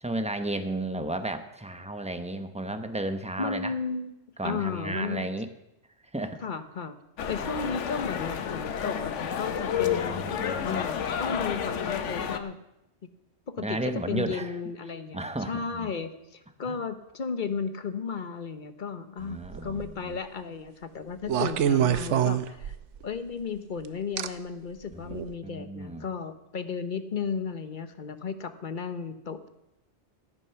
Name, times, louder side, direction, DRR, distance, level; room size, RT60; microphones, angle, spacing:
voice 1, 0.0-3.7 4.4-5.5 6.1-6.4 9.8-10.8 13.6-14.5 15.1-15.9 16.7-16.8 19.2-20.2 24.9-26.0, right 1 dB, 5° right, 8 dB, 0.8 m, -33 dB
voice 2, 3.4-4.1 4.4-5.3 6.4-7.0 7.3-12.6 13.5-22.8 23.0-29.5, left 5 dB, 45° left, 10 dB, 1.0 m, -34 dB
sound 1, 7.2-12.4, left 8 dB, 85° left, 1.2 m, -30 dB
Locking my phone, 19.5-19.9 21.3-23.0 24.2-24.3 25.1-25.3, right 10 dB, 85° right, 1.0 m, -25 dB
15.5 x 9.8 x 5.8 m, 0.87 s
omnidirectional pair, 1.2 m